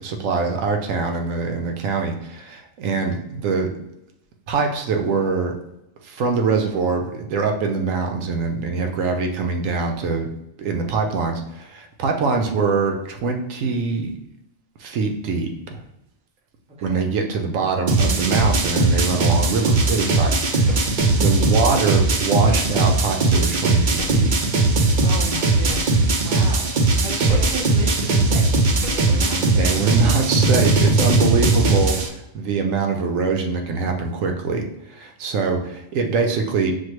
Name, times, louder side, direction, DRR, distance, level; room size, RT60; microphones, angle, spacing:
voice 1, 0.0-3.7 4.5-5.5 6.0-10.3 10.6-14.1 14.8-15.8 16.8-20.9 21.1-24.3 27.2-27.3 29.1-36.7, right 4 dB, 80° right, 3 dB, 1.0 m, -23 dB
voice 2, 16.8-17.1 25.0-30.1, right 3 dB, 5° right, -5 dB, 0.8 m, -35 dB
sound 1, 17.9-32.1, right 3 dB, 60° right, 0.5 m, -19 dB
sound 2, 18.3-18.8 20.6-21.1 22.5-22.8 24.0-24.3 25.7-26.1 27.3-27.8 28.8-29.2, left 4 dB, 85° left, 1.1 m, -32 dB
6.4 x 2.2 x 3.0 m, 0.87 s
omnidirectional pair, 1.3 m